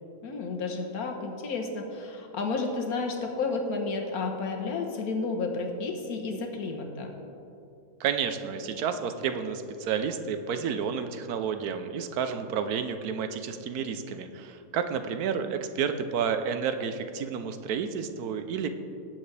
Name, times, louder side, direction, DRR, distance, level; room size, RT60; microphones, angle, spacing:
voice 1, 0.2-7.1, left 3 dB, 80° left, 3 dB, 1.6 m, -31 dB
voice 2, 8.0-18.7, right 7 dB, 85° right, 8 dB, 1.2 m, -30 dB
18.0 x 7.4 x 3.3 m, 2.7 s
omnidirectional pair, 1.6 m